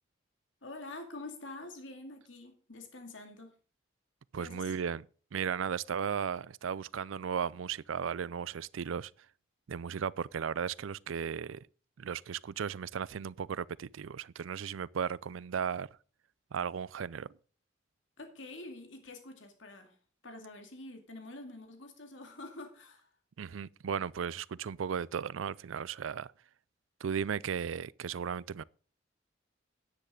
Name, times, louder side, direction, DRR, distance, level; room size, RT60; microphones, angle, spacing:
voice 1, 0.6-3.5 4.3-4.7 18.2-20.0 20.2-23.1, left 2 dB, 75° left, 2.3 m, -47 dB
voice 2, 4.3-5.0 5.3-9.1 9.7-11.6 12.0-15.9 16.5-17.3 23.4-26.3 27.0-28.6, right 7 dB, 90° right, 0.4 m, -35 dB
10.0 x 10.0 x 3.8 m
head